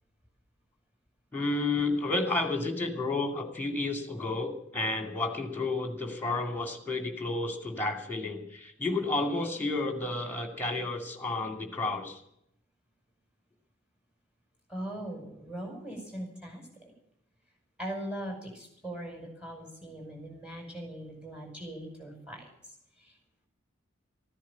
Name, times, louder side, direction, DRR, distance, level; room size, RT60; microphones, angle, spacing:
voice 1, 1.3-12.2, left 2 dB, 10° left, 6 dB, 2.4 m, -31 dB
voice 2, 14.7-16.9 17.8-22.5 23.0-23.2, right 1 dB, 5° right, 2 dB, 5.6 m, -40 dB
14.5 x 10.0 x 8.6 m, 0.74 s
head